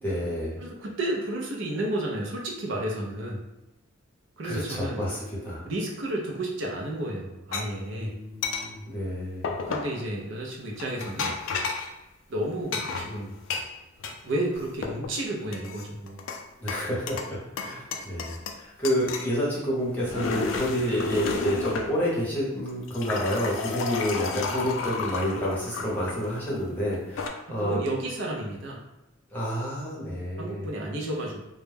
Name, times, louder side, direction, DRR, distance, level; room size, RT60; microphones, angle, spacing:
voice 1, 0.0-0.6 4.4-5.6 7.9-9.5 16.6-27.8 29.3-30.7, equal, 10° left, -8 dB, 0.7 m, -29 dB
voice 2, 0.6-3.4 4.4-5.0 5.7-8.2 9.7-11.3 12.3-13.4 14.2-16.2 27.5-28.8 30.4-31.4, right 1 dB, 65° right, -1 dB, 0.5 m, -32 dB
sound 1, 7.5-7.6 8.4-8.7 9.4-10.0 10.8-11.9 12.7-14.2 14.5-15.1 15.5-16.4 16.7-17.3 17.6-18.6 18.8-19.3 19.9-21.9 22.7-26.2 26.9-27.3, left 4 dB, 70° left, 0.3 m, -32 dB
2.2 x 2.0 x 3.2 m, 0.95 s
head